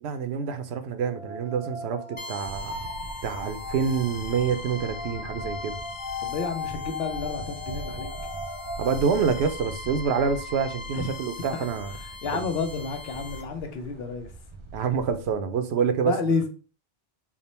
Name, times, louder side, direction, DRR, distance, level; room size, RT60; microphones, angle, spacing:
voice 1, 0.0-2.9 3.2-5.7 8.8-11.9 12.3-12.4 14.7-16.1, right 6 dB, 85° right, 0.8 m, -27 dB
sound 1, 1.0-9.0, left 3 dB, 50° left, 1.2 m, -38 dB
sound 2, 2.2-13.4, left 2 dB, 35° left, 0.8 m, -41 dB
sound 3, 2.4-15.3, right 2 dB, 40° right, 0.4 m, -42 dB
voice 2, 6.2-8.1 10.9-11.1 11.5-11.6 12.0-14.3 16.0-16.5, left 4 dB, 75° left, 0.9 m, -30 dB
3.6 x 2.1 x 4.1 m
omnidirectional pair, 1.1 m